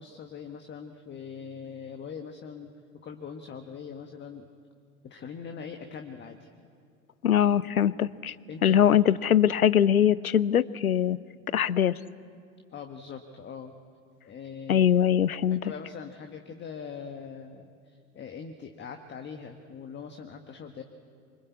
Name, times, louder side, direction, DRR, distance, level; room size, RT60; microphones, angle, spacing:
voice 1, 0.0-2.7 3.0-4.5 5.0-6.5 8.5-8.8 12.7-13.7 14.2-14.9 15.6-20.8, left 6 dB, 25° left, 5 dB, 1.5 m, -42 dB
voice 2, 7.2-8.3 8.6-11.2 11.5-12.0 14.7-15.6, left 9 dB, 80° left, 21 dB, 0.7 m, -22 dB
25.5 x 24.5 x 8.4 m, 2.3 s
figure-of-eight pair, 80°, 42 cm